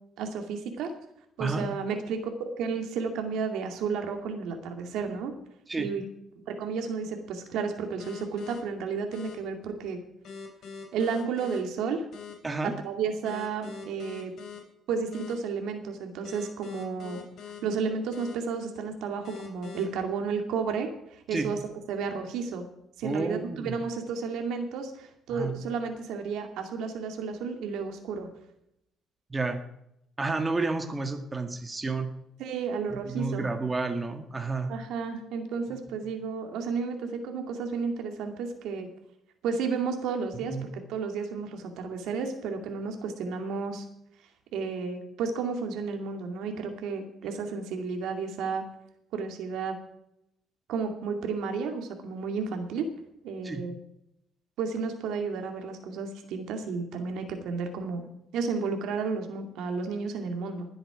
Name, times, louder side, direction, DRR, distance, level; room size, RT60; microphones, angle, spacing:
voice 1, 0.2-0.9 1.4-5.3 5.8-6.0 6.5-10.0 10.9-12.0 12.6-14.3 14.9-17.2 17.6-21.6 21.9-22.6 23.0-28.3 32.4-33.5 34.7-38.9 39.4-43.9 44.5-48.6 49.1-49.8 50.7-52.9 53.2-53.7 54.6-58.0 58.3-60.7, right 5 dB, 80° right, 4 dB, 2.4 m, -32 dB
sound 1, 8.0-8.6 9.1-9.3 10.2-11.6 12.1-12.3 13.2-14.6 15.1-15.3 16.2-17.6 18.1-18.3 19.2-19.8, left 6 dB, 60° left, 4.0 m, -42 dB
voice 2, 23.0-23.8 25.3-25.6 29.3-29.6 30.2-32.1 33.0-34.7 40.4-40.6 53.4-53.6, right 3 dB, 20° right, 5 dB, 1.7 m, -30 dB
20.5 x 8.0 x 5.1 m, 0.79 s
cardioid pair, 110°, 0 cm